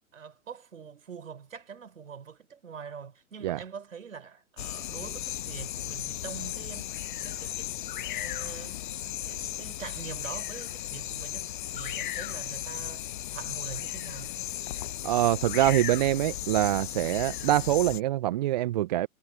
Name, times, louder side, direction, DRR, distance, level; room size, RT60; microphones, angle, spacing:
voice 1, 0.1-6.9 7.2-14.3, right 6 dB, 65° right, 4.4 m, -44 dB
sound 1, 4.6-18.0, left 14 dB, 35° left, 1.0 m, -36 dB
voice 2, 15.0-19.1, right 14 dB, 30° right, 0.9 m, -25 dB
figure-of-eight pair, 125°, 42 cm